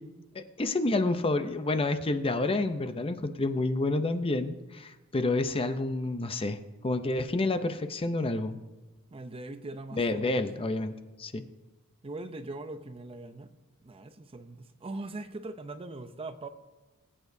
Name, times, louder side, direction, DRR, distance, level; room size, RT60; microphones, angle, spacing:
voice 1, 0.3-6.6 6.8-8.6 10.0-10.9 11.2-11.4, left 2 dB, 25° left, 9 dB, 0.6 m, -29 dB
voice 2, 9.1-10.5 12.0-13.5 13.8-16.5, right 2 dB, 25° right, 10 dB, 0.6 m, -41 dB
20.5 x 8.7 x 2.7 m, 1.2 s
head